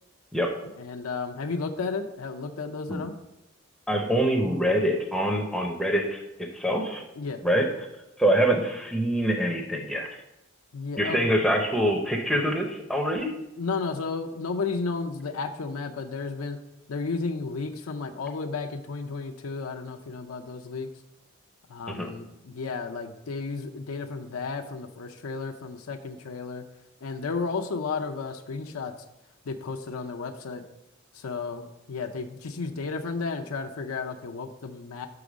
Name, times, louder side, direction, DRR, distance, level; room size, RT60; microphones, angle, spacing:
voice 1, 0.8-3.1 7.2-7.4 10.7-11.2 13.6-16.6 16.9-20.9 21.7-26.6 27.0-28.9 29.5-30.6 31.1-35.1, left 4 dB, 85° left, 4 dB, 0.5 m, -33 dB
voice 2, 3.9-7.0 7.4-7.7 8.2-10.1 11.0-13.3 21.9-22.1, equal, ahead, 2 dB, 0.5 m, -25 dB
6.1 x 4.8 x 5.0 m, 0.92 s
head